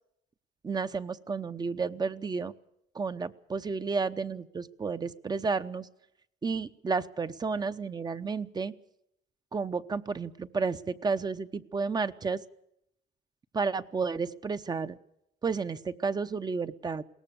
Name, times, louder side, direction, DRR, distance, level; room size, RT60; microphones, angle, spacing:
voice 1, 0.6-2.5 2.9-5.9 6.4-8.7 9.5-12.4 13.5-15.0 15.4-17.0, right 4 dB, 25° right, 12 dB, 0.8 m, -31 dB
21.5 x 18.0 x 7.0 m, 0.79 s
cardioid pair, 110°, 17 cm